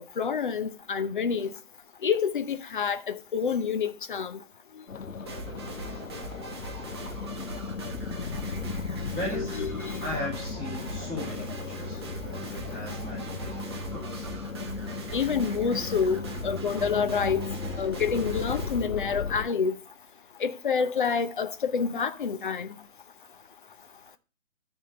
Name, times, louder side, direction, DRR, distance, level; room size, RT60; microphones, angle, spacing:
voice 1, 0.2-1.5 2.0-4.4 9.3-10.1 15.1-17.5 17.8-19.8 20.4-22.7, left 6 dB, 40° left, 0.7 m, -28 dB
sound 1, 4.9-19.5, left 4 dB, 85° left, 0.7 m, -36 dB
sound 2, 5.3-18.8, right 3 dB, 20° right, 0.7 m, -41 dB
voice 2, 9.1-9.6 10.0-14.3, left 1 dB, 5° left, 4.2 m, -37 dB
9.1 x 3.7 x 6.7 m
figure-of-eight pair, 140°, 39 cm